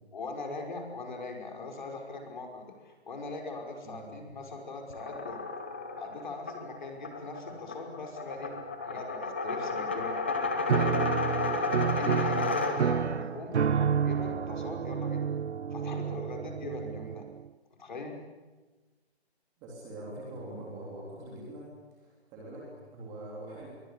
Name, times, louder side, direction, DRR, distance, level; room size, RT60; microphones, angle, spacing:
voice 1, 0.1-5.4 6.0-8.5 8.9-10.2 10.7-11.0 11.5-15.3 15.7-17.2 17.8-18.2, left 3 dB, 45° left, 2 dB, 5.6 m, -40 dB
sound 1, 4.9-13.2, left 3 dB, 10° left, 0.8 m, -33 dB
Piano, 10.7-17.5, right 7 dB, 85° right, 0.8 m, -30 dB
voice 2, 19.6-21.7 22.0-23.7, right 1 dB, 10° right, -3 dB, 3.5 m, -43 dB
29.0 x 23.0 x 8.4 m, 1.2 s
hypercardioid pair, 175°, 33 cm